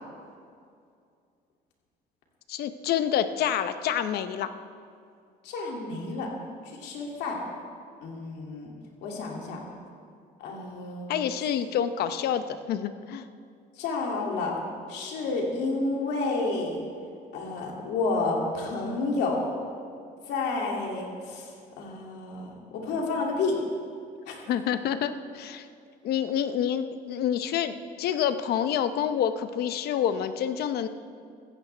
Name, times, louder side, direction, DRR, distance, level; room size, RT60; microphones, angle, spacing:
voice 1, 2.5-4.5 11.1-13.3 24.5-25.7 26.0-30.9, left 9 dB, 70° left, 11 dB, 0.7 m, -28 dB
voice 2, 5.4-6.3 6.8-7.4 8.0-8.7 9.0-9.6 10.4-11.1 13.8-14.6 14.9-16.8 17.3-19.5 20.3-23.5 24.3-24.4, left 3 dB, 85° left, -1 dB, 2.5 m, -30 dB
15.5 x 14.5 x 3.4 m, 2.3 s
cardioid pair, 110°, 17 cm